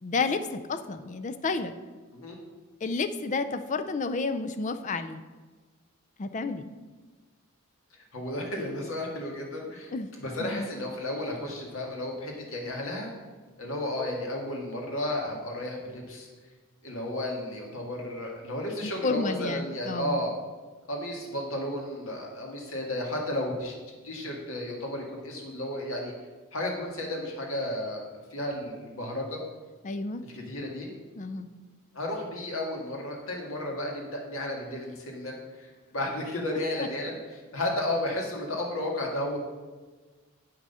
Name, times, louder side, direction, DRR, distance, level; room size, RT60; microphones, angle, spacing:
voice 1, 0.0-1.7 2.8-5.2 6.2-6.7 9.9-10.1 10.4-10.7 18.8-20.2 29.8-30.2 31.2-31.5 36.8-36.9, left 3 dB, 35° left, 9 dB, 0.4 m, -31 dB
voice 2, 7.9-13.1 13.6-16.3 16.8-20.3 20.9-23.8 24.0-26.1 26.5-28.0 28.3-29.4 30.2-30.9 31.9-39.4, left 1 dB, 65° left, 0 dB, 2.0 m, -33 dB
8.9 x 6.1 x 5.5 m, 1.3 s
head